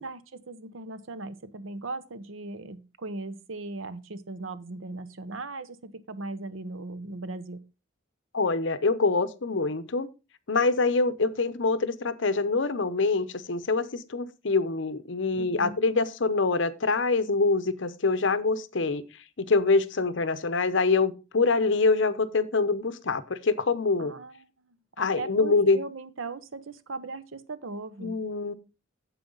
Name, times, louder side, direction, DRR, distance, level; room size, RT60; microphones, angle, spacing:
voice 1, 0.0-7.6 15.3-15.9 24.0-24.4 25.0-28.2, right 3 dB, 75° right, 14 dB, 0.8 m, -38 dB
voice 2, 8.3-10.1 10.5-19.0 19.4-24.1 25.0-25.8 28.0-28.5, left 3 dB, 65° left, 13 dB, 0.8 m, -25 dB
9.1 x 7.6 x 3.9 m, 0.29 s
head